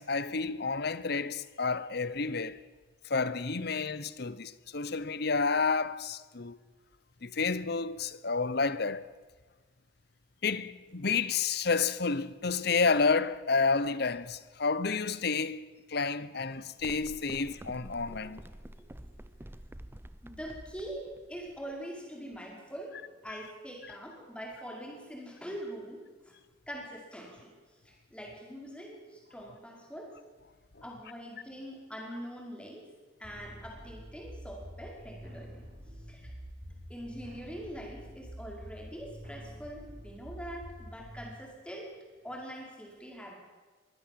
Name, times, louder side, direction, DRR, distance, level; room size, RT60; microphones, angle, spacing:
voice 1, 0.0-2.6 3.0-6.6 7.2-9.1 10.4-18.4 23.3-23.4, left 4 dB, 55° left, 0.9 m, -30 dB
sound 1, 16.8-21.9, right 1 dB, 10° right, 0.7 m, -48 dB
voice 2, 18.1-18.4 19.0-19.1 20.2-26.0 26.3-26.4 26.7-27.5 27.9-30.1 30.8-32.8 33.2-35.7 36.1-36.3 36.9-41.9 42.2-43.3, equal, 5° left, 5.1 m, -43 dB
sound 2, 33.2-41.2, equal, 45° right, 6.0 m, -47 dB
23.5 x 15.5 x 7.7 m
head